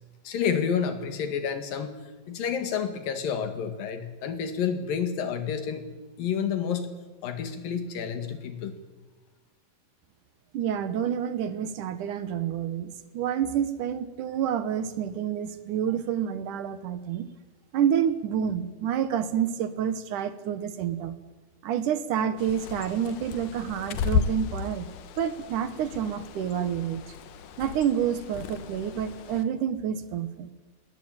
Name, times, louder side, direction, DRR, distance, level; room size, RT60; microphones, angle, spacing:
voice 1, 0.3-2.0 2.3-5.9 6.2-6.9 7.2-8.8, left 7 dB, 85° left, 8 dB, 3.8 m, -29 dB
voice 2, 10.5-17.3 17.7-21.2 21.6-24.9 25.2-27.0 27.6-30.5, right 9 dB, 70° right, 13 dB, 2.6 m, -28 dB
Bird, 22.4-29.4, left 6 dB, 70° left, 2.8 m, -34 dB
20.0 x 19.5 x 8.9 m, 1.2 s
omnidirectional pair, 3.9 m